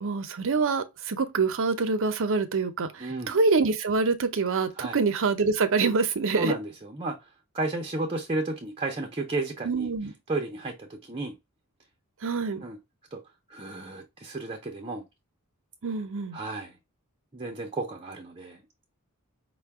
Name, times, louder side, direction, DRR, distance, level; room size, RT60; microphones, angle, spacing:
voice 1, 0.0-6.5 9.6-10.1 12.2-12.6 15.8-16.4, right 4 dB, 60° right, 0.6 m, -26 dB
voice 2, 3.0-3.4 4.8-5.0 6.3-7.3 7.5-9.9 10.3-11.3 12.6-12.8 13.1-13.2 13.5-15.0 16.3-16.8 17.3-18.6, right 2 dB, 25° right, 0.7 m, -33 dB
5.5 x 2.2 x 3.4 m
head